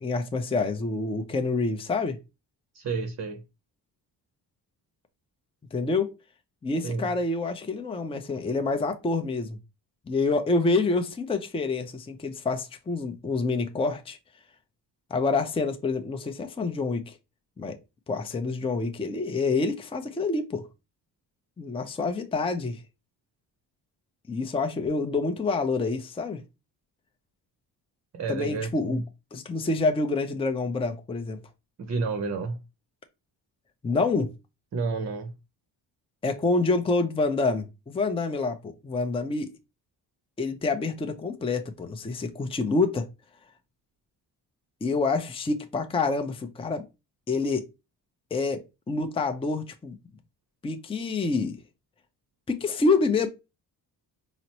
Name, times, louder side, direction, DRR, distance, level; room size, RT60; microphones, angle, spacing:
voice 1, 0.0-2.2 5.7-6.1 6.6-9.6 10.1-14.2 15.1-17.2 17.6-17.8 18.1-20.7 21.6-22.8 24.3-26.4 28.3-29.0 29.3-31.4 33.8-34.3 36.2-39.5 40.4-43.1 44.8-46.8 47.3-47.7 48.3-50.0 50.6-51.6 52.5-53.3, left 3 dB, 15° left, 0.5 m, -27 dB
voice 2, 2.7-3.4 6.8-7.1 28.1-29.0 31.8-32.6 34.7-35.3, right 4 dB, 40° right, 0.7 m, -30 dB
4.0 x 2.0 x 2.8 m
supercardioid pair, 70°, 43 cm